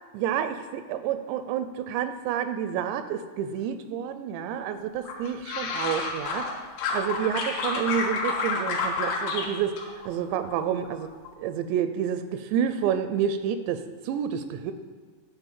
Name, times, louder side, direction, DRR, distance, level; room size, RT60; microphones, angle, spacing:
voice 1, 0.1-6.5 6.9-9.8 10.1-11.1 11.4-14.7, right 8 dB, 85° right, 10 dB, 2.7 m, -29 dB
sound 1, 5.0-6.5 6.8-9.5 9.8-10.5 10.8-11.3, left 4 dB, 70° left, 3.0 m, -29 dB
10.5 x 4.0 x 7.3 m, 1.5 s
omnidirectional pair, 5.1 m